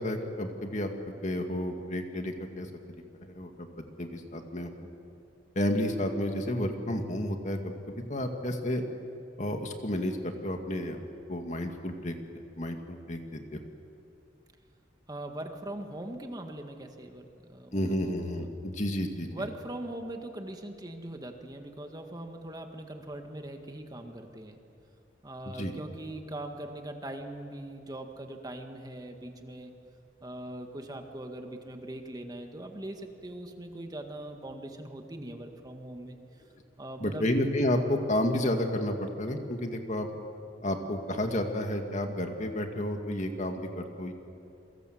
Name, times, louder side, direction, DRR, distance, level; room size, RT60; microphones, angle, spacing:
voice 1, 0.0-3.7 4.0-4.7 5.6-8.8 9.4-11.0 11.3-12.1 12.6-13.6 17.7-19.5 25.5-25.7 37.0-40.1 40.6-44.1, left 1 dB, 40° left, 4 dB, 2.3 m, -31 dB
voice 2, 15.1-18.5 19.3-24.6 25.2-29.7 30.2-36.2 36.8-37.3, right 1 dB, 20° right, 4 dB, 1.8 m, -41 dB
28.0 x 24.0 x 7.9 m, 2.6 s
head